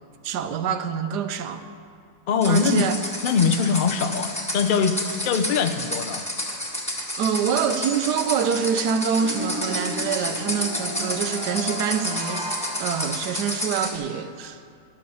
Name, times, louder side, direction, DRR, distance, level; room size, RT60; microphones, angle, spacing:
voice 1, 0.2-1.6 2.4-2.9 7.2-12.4 12.8-14.6, right 7 dB, 85° right, 1.3 m, -25 dB
voice 2, 2.3-2.8 3.2-5.0 5.2-6.2, left 6 dB, 70° left, 0.5 m, -22 dB
sound 1, 2.4-14.0, left 1 dB, 5° left, 1.2 m, -31 dB
sound 2, 9.2-13.8, right 1 dB, 30° right, 0.5 m, -35 dB
11.0 x 8.2 x 6.9 m
omnidirectional pair, 1.7 m